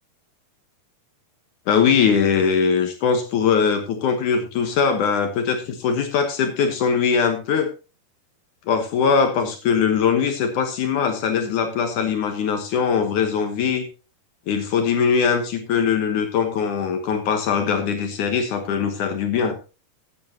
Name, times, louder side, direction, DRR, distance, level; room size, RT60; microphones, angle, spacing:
voice 1, 1.7-7.7 8.7-13.9 14.5-19.6, left 6 dB, 70° left, 6 dB, 2.5 m, -21 dB
15.5 x 9.3 x 2.9 m, 0.31 s
omnidirectional pair, 3.9 m